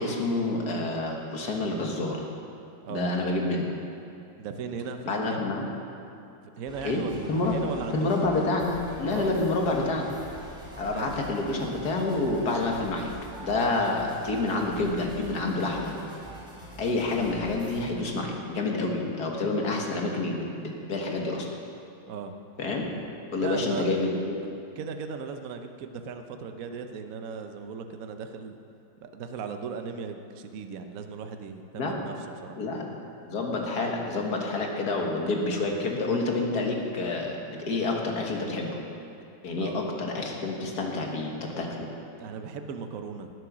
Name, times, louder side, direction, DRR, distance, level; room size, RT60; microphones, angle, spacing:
voice 1, 0.0-2.2 2.9-3.7 5.0-5.6 6.8-7.6 7.9-10.1 10.8-13.1 13.4-15.9 16.8-21.5 22.6-22.9 23.3-24.4 31.8-32.0 32.6-32.8 33.2-38.8 39.4-41.9, left 2 dB, 60° left, 0 dB, 2.1 m, -28 dB
voice 2, 4.4-5.4 6.6-8.1 9.1-9.3 10.9-11.2 22.1-22.3 23.4-24.0 24.8-28.6 29.0-32.1 32.4-32.6 39.6-39.8 42.2-43.3, right 5 dB, 60° right, 6 dB, 1.1 m, -37 dB
sound 1, 6.7-17.8, equal, ahead, 2.9 m, -44 dB
18.5 x 8.0 x 6.1 m, 2.7 s
omnidirectional pair, 1.9 m